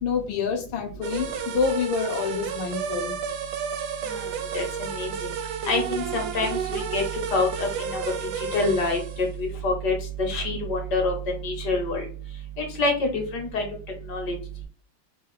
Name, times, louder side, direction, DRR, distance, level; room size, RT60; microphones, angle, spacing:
voice 1, 0.0-3.1, left 6 dB, 80° left, 3 dB, 1.5 m, -27 dB
sound 1, 1.0-9.3, right 7 dB, 75° right, 1.0 m, -32 dB
voice 2, 4.5-5.1 5.6-7.0 7.3-8.0 8.4-11.1 11.4-12.1 12.6-13.6 14.1-14.3, left 2 dB, 60° left, 2 dB, 1.4 m, -26 dB
3.9 x 2.3 x 3.1 m, 0.39 s
omnidirectional pair, 2.2 m